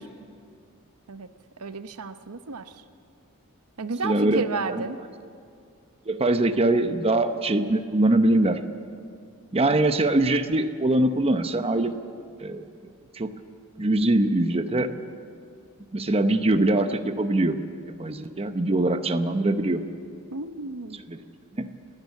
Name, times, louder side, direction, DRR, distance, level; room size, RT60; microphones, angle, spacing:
voice 1, 1.6-2.7 3.8-5.0 20.3-21.0, right 3 dB, 90° right, 10 dB, 0.9 m, -32 dB
voice 2, 4.0-4.4 4.7-4.8 6.1-8.6 9.5-11.9 12.4-12.6 13.1-13.3 13.8-14.9 15.9-17.6 18.0-19.8 21.1-21.2 21.6-21.7, right 2 dB, 25° right, 8 dB, 0.8 m, -22 dB
29.5 x 11.0 x 8.3 m, 2.4 s
head